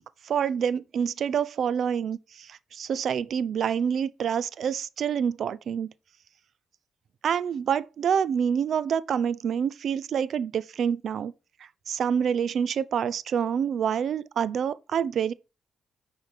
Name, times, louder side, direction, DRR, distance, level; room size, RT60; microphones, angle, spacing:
voice 1, 0.2-5.9 7.2-11.3 11.9-15.3, right 7 dB, 65° right, 0.5 m, -27 dB
6.4 x 5.0 x 4.9 m
cardioid pair, 70°, 0 cm